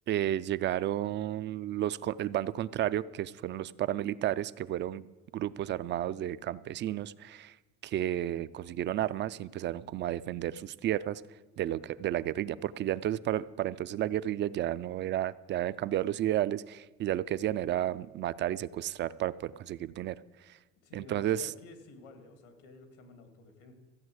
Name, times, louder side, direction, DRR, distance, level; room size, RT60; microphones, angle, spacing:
voice 1, 0.1-5.1 5.3-7.5 7.8-11.2 11.6-20.2 20.9-21.5, right 12 dB, 40° right, 16 dB, 0.4 m, -32 dB
voice 2, 20.8-23.7, left 2 dB, 80° left, 7 dB, 2.5 m, -53 dB
14.5 x 8.5 x 7.9 m, 1.2 s
cardioid pair, 130°, 30 cm